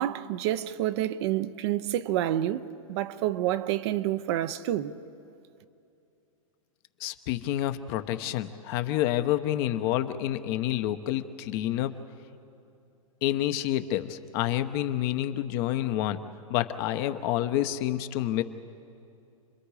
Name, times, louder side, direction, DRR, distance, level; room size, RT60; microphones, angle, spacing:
voice 1, 0.0-4.9, right 12 dB, 50° right, 0.8 m, -28 dB
voice 2, 7.0-11.9 13.2-16.2 16.5-18.4, left 13 dB, 45° left, 1.0 m, -28 dB
29.5 x 21.5 x 4.9 m
hypercardioid pair, 130°, 18 cm